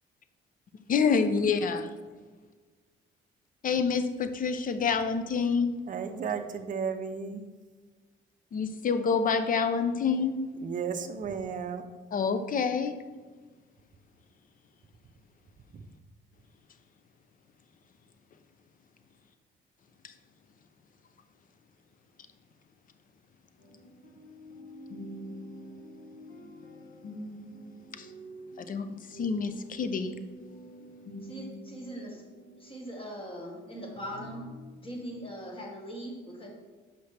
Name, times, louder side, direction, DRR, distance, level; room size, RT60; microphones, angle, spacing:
voice 1, 0.9-1.8 3.6-5.8 8.5-10.4 12.1-13.0 28.0-28.1 28.7-30.2, left 5 dB, 45° left, 10 dB, 0.5 m, -27 dB
voice 2, 5.8-7.4 10.6-11.8 15.7-15.9, right 6 dB, 40° right, 6 dB, 0.5 m, -34 dB
sound 1, 23.6-33.6 34.0-34.7, equal, 75° left, 1.1 m, -47 dB
voice 3, 31.2-32.2 32.6-34.4 34.8-36.5, equal, 25° left, -1 dB, 1.5 m, -40 dB
5.8 x 5.5 x 3.3 m, 1.4 s
cardioid pair, 90°, 20 cm